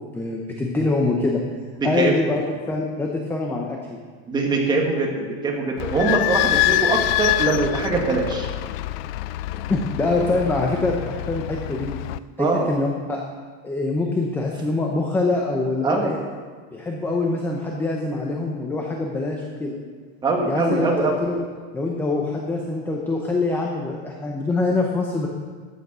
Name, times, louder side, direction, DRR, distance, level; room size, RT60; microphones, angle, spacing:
voice 1, 0.1-1.4 1.8-4.0 9.7-11.9 12.4-13.2 13.6-16.2 16.7-19.8 20.4-21.4 21.7-25.3, left 3 dB, 5° left, 0 dB, 0.7 m, -24 dB
voice 2, 1.8-2.1 4.3-8.5 12.4-12.7 15.8-16.1 20.2-21.1, right 3 dB, 15° right, 0 dB, 1.6 m, -22 dB
Idling / Squeak, 5.8-12.2, left 15 dB, 60° left, 0.4 m, -25 dB
13.5 x 9.3 x 6.1 m, 1.5 s
supercardioid pair, 180°, 33 cm